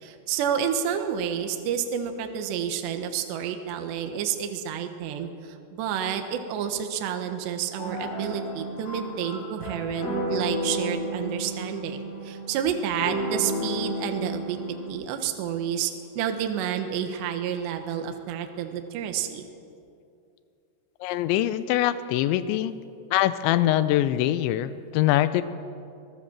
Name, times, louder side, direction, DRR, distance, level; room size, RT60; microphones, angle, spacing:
voice 1, 0.0-14.6 14.9-19.5, right 8 dB, 70° right, 6 dB, 3.2 m, -30 dB
sound 1, 7.8-14.9, equal, 60° left, 7.4 m, -32 dB
voice 2, 21.0-22.8 23.1-25.4, left 13 dB, 85° left, 13 dB, 2.6 m, -23 dB
24.5 x 18.5 x 7.4 m, 2.5 s
omnidirectional pair, 5.9 m